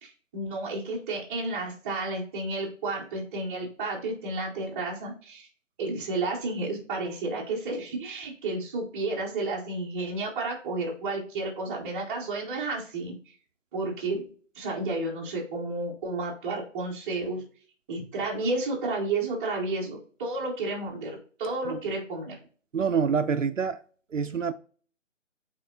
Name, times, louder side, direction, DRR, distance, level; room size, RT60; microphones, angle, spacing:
voice 1, 0.0-5.5 5.8-13.1 13.7-14.2 14.5-17.4 17.9-22.3, right 2 dB, 10° right, 0.9 m, -31 dB
voice 2, 22.7-23.8 24.1-24.5, right 6 dB, 70° right, 0.7 m, -26 dB
8.8 x 3.5 x 3.8 m
figure-of-eight pair, 145°, 39 cm